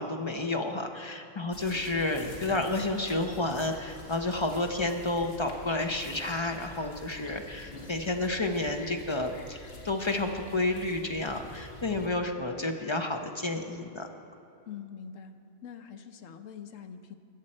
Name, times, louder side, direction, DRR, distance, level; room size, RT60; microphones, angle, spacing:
voice 1, 0.0-14.1, left 2 dB, 30° left, 4 dB, 0.5 m, -31 dB
sound 1, 1.5-12.1, left 1 dB, 45° left, 1.7 m, -47 dB
voice 2, 14.7-17.2, left 7 dB, 70° left, 9 dB, 1.0 m, -44 dB
22.0 x 7.6 x 4.3 m, 2.6 s
omnidirectional pair, 1.4 m